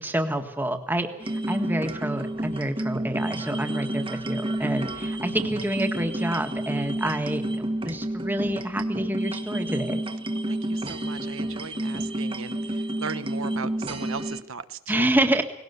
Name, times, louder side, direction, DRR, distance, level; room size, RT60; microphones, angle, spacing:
voice 1, 0.0-10.0 14.9-15.4, right 1 dB, 10° right, 6 dB, 1.7 m, -28 dB
sound 1, 1.2-14.4, right 1 dB, 25° right, 1.5 m, -30 dB
voice 2, 10.5-15.0, right 5 dB, 75° right, 11 dB, 1.1 m, -37 dB
19.5 x 18.0 x 8.1 m, 0.80 s
head